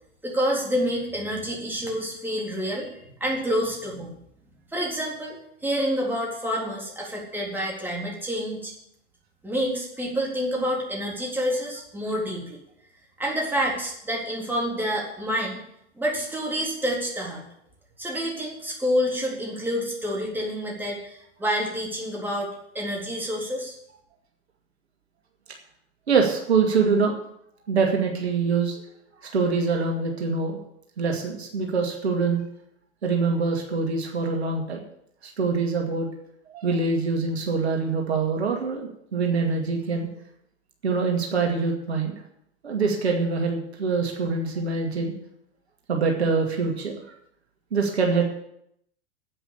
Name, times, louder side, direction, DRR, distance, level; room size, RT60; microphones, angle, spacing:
voice 1, 0.2-4.1 4.7-5.4 5.6-8.7 9.4-12.6 13.2-15.6 16.0-17.4 18.0-22.5 22.7-23.7, equal, 5° right, -3 dB, 3.8 m, -28 dB
voice 2, 26.1-27.2 27.7-28.8 29.2-30.6 31.0-32.4 33.0-34.8 35.2-36.1 36.5-40.1 40.8-42.2 42.6-45.1 45.9-46.9 47.7-48.2, right 4 dB, 65° right, 2 dB, 2.3 m, -24 dB
10.0 x 8.4 x 8.5 m, 0.75 s
figure-of-eight pair, 95°, 35 cm